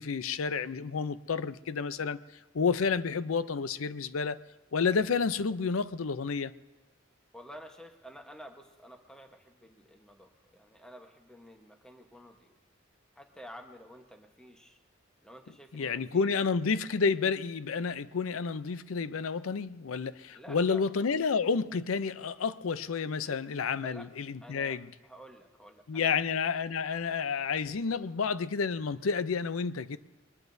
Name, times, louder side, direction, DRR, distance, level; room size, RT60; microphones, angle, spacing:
voice 1, 0.0-2.2 2.5-4.4 4.7-6.5 15.7-24.9 25.9-30.0, left 5 dB, 80° left, 15 dB, 0.5 m, -30 dB
voice 2, 7.3-12.5 13.1-14.8 15.2-16.3 20.3-20.9 23.2-23.4 23.8-24.1 24.4-26.2, equal, 5° left, 4 dB, 1.1 m, -51 dB
22.0 x 20.0 x 2.7 m, 1.2 s
head